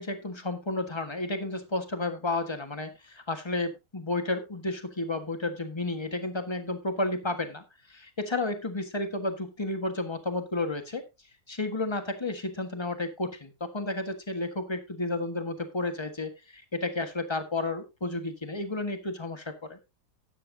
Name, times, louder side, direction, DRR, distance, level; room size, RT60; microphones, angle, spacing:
voice 1, 0.0-11.0 11.5-19.8, left 2 dB, 15° left, 7 dB, 1.4 m, -32 dB
13.5 x 9.8 x 2.7 m, 0.24 s
omnidirectional pair, 1.8 m